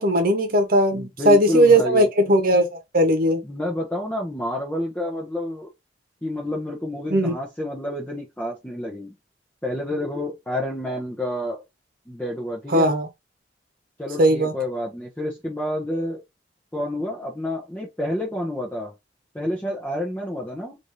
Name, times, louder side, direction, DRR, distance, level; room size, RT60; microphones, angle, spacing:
voice 1, 0.0-3.4 7.1-7.3 12.7-13.1 14.2-14.5, right 1 dB, 55° right, 1.0 m, -18 dB
voice 2, 0.9-2.1 3.4-5.7 6.2-9.1 9.6-11.6 12.1-12.9 14.0-16.2 16.7-18.9 19.3-20.8, left 1 dB, 10° left, 0.7 m, -29 dB
3.4 x 2.7 x 3.1 m
head